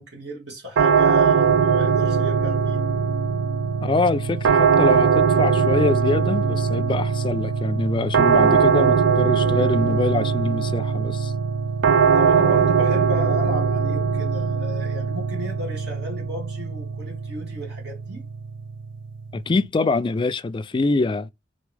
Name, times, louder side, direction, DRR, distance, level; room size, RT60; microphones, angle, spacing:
voice 1, 0.0-2.9 12.1-18.2, left 1 dB, 65° right, 1.9 m, -35 dB
sound 1, 0.8-19.7, right 6 dB, 85° right, 0.4 m, -21 dB
voice 2, 3.8-11.3 19.3-21.3, left 3 dB, 25° left, 0.3 m, -24 dB
4.0 x 3.5 x 3.3 m
head